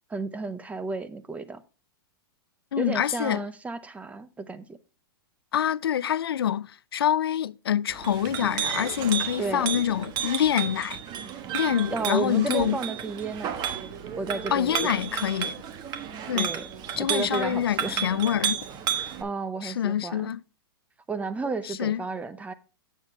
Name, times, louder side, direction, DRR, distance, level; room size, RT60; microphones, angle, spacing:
voice 1, 0.1-1.6 2.8-4.8 9.4-9.8 11.9-13.6 14.2-15.0 16.3-16.7 17.0-18.1 19.2-20.3 21.1-22.5, right 3 dB, 10° right, 0.8 m, -32 dB
voice 2, 2.7-3.4 5.5-11.0 11.5-12.8 14.5-15.5 16.3-16.5 17.0-18.6 19.6-20.4 21.6-22.0, left 10 dB, 85° left, 0.4 m, -26 dB
Chink clink, 7.9-19.2, right 9 dB, 35° right, 1.3 m, -32 dB
8.8 x 7.4 x 3.3 m
hypercardioid pair, 120°, 12 cm